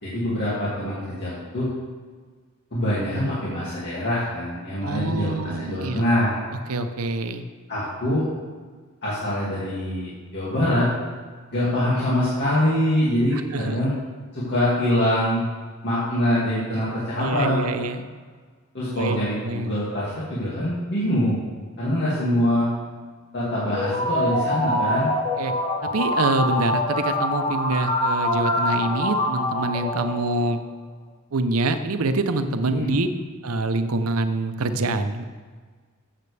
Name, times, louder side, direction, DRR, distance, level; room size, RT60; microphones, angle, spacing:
voice 1, 0.0-1.7 2.7-6.4 7.7-8.3 9.0-10.9 11.5-13.9 14.3-15.4 15.8-17.7 18.7-21.4 21.8-22.7 23.3-25.1 32.7-33.0, left 1 dB, 50° left, -9 dB, 2.3 m, -24 dB
voice 2, 4.8-6.0 6.7-7.4 13.3-13.9 17.2-18.0 18.9-19.8 25.4-25.5 25.8-30.6 31.3-33.1 33.4-35.2, right 2 dB, 75° right, 9 dB, 0.7 m, -26 dB
sound 1, 23.7-30.6, left 1 dB, 30° left, 1.5 m, -25 dB
13.5 x 7.5 x 3.4 m, 1.5 s
head